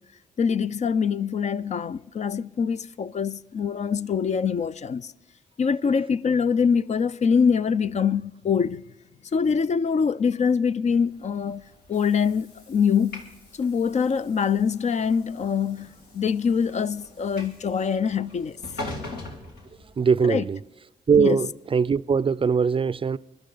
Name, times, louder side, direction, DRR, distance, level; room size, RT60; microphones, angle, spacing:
voice 1, 0.4-5.1 5.6-8.8 9.3-11.6 11.9-13.2 13.6-15.9 16.1-18.6 20.2-20.4 21.2-21.4, left 6 dB, 45° left, 0.5 m, -24 dB
Train / Sliding door, 11.1-20.4, left 2 dB, 85° left, 2.0 m, -42 dB
voice 2, 20.0-20.6 21.1-23.2, right 6 dB, 35° right, 0.4 m, -21 dB
21.0 x 11.5 x 3.9 m
supercardioid pair, 50°, 16 cm